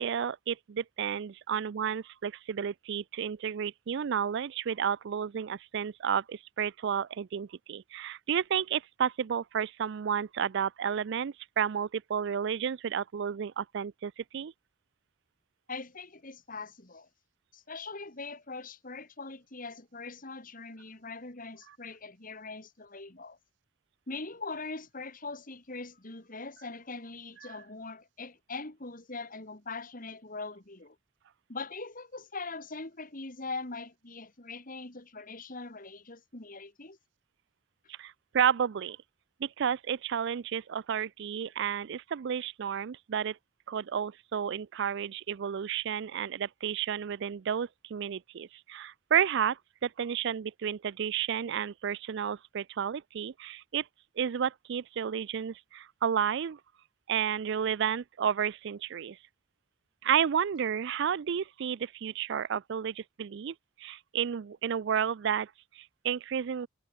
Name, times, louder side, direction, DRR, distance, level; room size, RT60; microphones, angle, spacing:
voice 1, 0.0-14.5 27.5-27.6 38.0-39.0 39.4-43.4 43.7-53.9 54.2-56.6 57.1-59.2 60.0-66.7, right 8 dB, 60° right, 0.4 m, -31 dB
voice 2, 15.7-17.1 17.5-23.4 24.1-31.0 31.5-37.0, left 3 dB, 40° left, 2.6 m, -42 dB
head